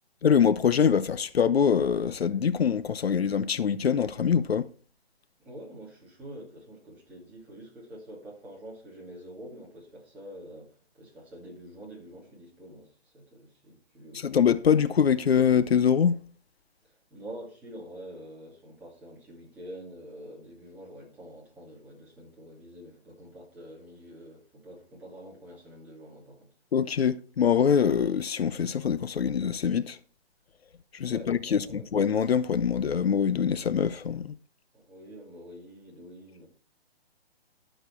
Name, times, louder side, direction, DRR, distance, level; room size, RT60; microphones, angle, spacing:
voice 1, 0.2-4.7 14.1-16.2 26.7-30.0 30.9-34.3, left 7 dB, 75° left, 0.7 m, -24 dB
voice 2, 5.4-14.3 16.8-26.5 31.1-31.9 34.7-36.5, equal, 5° right, 2.5 m, -46 dB
12.0 x 6.6 x 4.6 m
hypercardioid pair, 165°, 31 cm